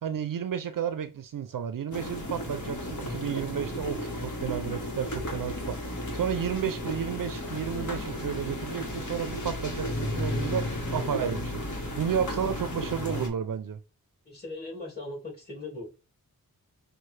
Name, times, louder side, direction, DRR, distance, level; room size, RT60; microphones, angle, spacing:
voice 1, 0.0-11.6 12.0-13.8, right 8 dB, 65° right, 0.5 m, -32 dB
sound 1, 1.9-13.3, left 1 dB, 55° left, 1.3 m, -34 dB
voice 2, 14.2-15.9, left 2 dB, 25° left, 2.5 m, -39 dB
5.6 x 2.2 x 3.2 m
wide cardioid pair, 70°, 36 cm